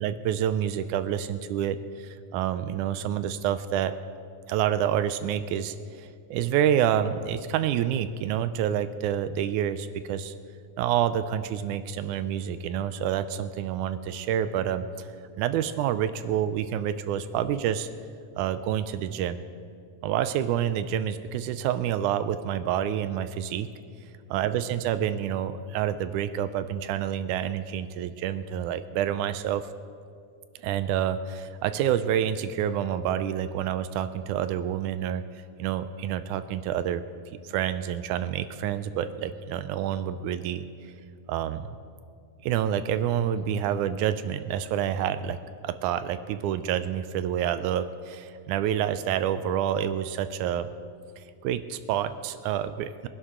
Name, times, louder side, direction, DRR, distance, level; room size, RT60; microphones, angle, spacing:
voice 1, 0.0-3.9 4.5-10.3 10.8-15.1 15.4-17.9 18.4-19.4 20.0-23.7 24.3-29.7 30.6-35.2 35.6-37.0 37.4-40.7 41.3-41.7 42.4-45.4 45.6-50.7 51.4-53.1, right 10 dB, 80° right, 12 dB, 1.9 m, -28 dB
23.0 x 11.0 x 3.7 m, 2.3 s
omnidirectional pair, 3.7 m